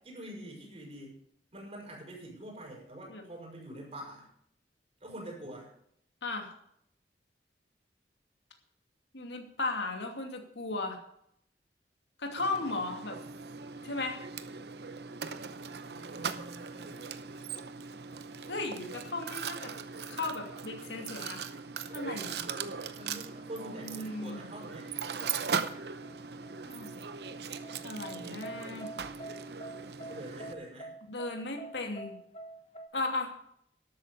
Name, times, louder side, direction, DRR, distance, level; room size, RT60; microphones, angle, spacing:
voice 1, 0.0-1.2 1.5-4.3 5.0-5.7 15.9-17.2 21.9-24.9 30.1-30.9, right 1 dB, 35° right, -2 dB, 6.2 m, -46 dB
voice 2, 9.1-11.0 12.2-13.2 13.8-14.2 18.5-19.7 20.1-21.4 21.9-22.3 23.7-24.4 26.7-27.0 27.8-28.9 31.1-32.2 32.9-33.3, left 2 dB, 90° left, 4 dB, 2.5 m, -36 dB
Mechanisms, 12.4-30.5, right 6 dB, 65° right, 0.8 m, -39 dB
sound 1, 25.2-32.9, right 2 dB, 35° left, 1.2 m, -46 dB
12.5 x 8.6 x 6.9 m, 0.70 s
head